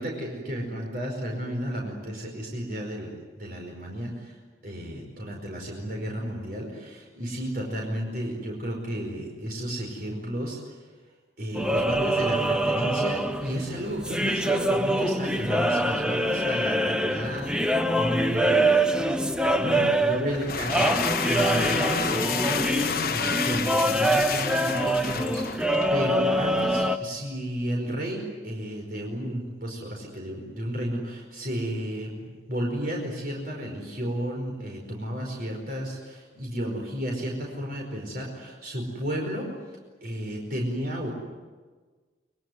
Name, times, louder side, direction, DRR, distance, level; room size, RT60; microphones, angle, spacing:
voice 1, 0.0-4.4 4.6-10.8 11.4-19.2 19.5-39.5 40.0-41.1, equal, 50° right, 0 dB, 5.1 m, -33 dB
sound 1, 11.5-27.0, right 1 dB, 5° right, 1.0 m, -25 dB
sound 2, 20.3-26.0, left 6 dB, 50° left, 1.3 m, -30 dB
24.5 x 23.5 x 9.5 m, 1.4 s
head